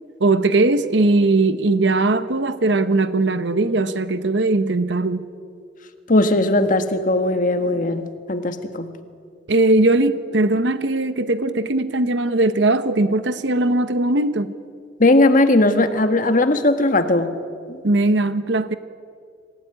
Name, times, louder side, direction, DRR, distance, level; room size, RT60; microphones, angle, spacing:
voice 1, 0.2-5.2 9.5-14.5 17.8-18.7, right 2 dB, 70° right, 11 dB, 0.9 m, -19 dB
voice 2, 6.1-8.9 15.0-17.4 17.7-17.8, left 2 dB, 45° left, 8 dB, 1.6 m, -18 dB
26.0 x 16.5 x 9.9 m, 2.3 s
head